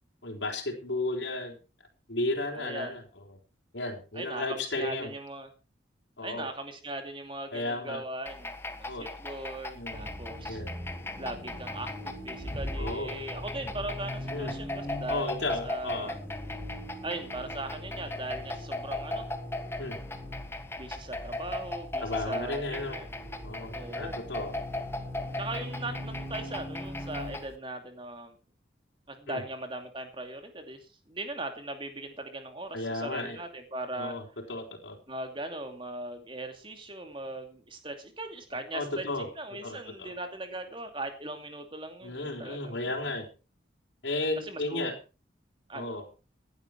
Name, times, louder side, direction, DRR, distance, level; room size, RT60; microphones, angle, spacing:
voice 1, 0.2-1.6 2.1-3.2 3.7-5.1 6.2-6.5 7.5-8.0 8.9-9.1 9.7-10.1 10.5-10.7 12.8-13.2 14.3-14.6 15.1-16.1 19.8-20.0 22.0-23.0 23.4-24.5 29.3-29.4 32.7-33.4 33.9-35.0 38.7-39.3 39.6-40.1 42.0-43.3 44.0-45.0 45.7-46.1, left 2 dB, 70° left, 0 dB, 4.3 m, -34 dB
voice 2, 2.5-3.0 4.1-5.5 6.2-10.6 11.2-16.1 17.0-19.2 20.8-23.1 23.7-24.1 25.4-28.4 29.1-34.1 35.1-39.0 39.4-43.1 44.4-44.9 45.7-46.0, right 2 dB, 25° right, 6 dB, 2.7 m, -39 dB
sound 1, 8.3-27.6, left 2 dB, 15° left, 1.2 m, -39 dB
Accelerating revving vroom, 9.9-27.4, left 1 dB, 10° right, 6.3 m, -41 dB
16.5 x 11.0 x 4.6 m, 0.32 s
head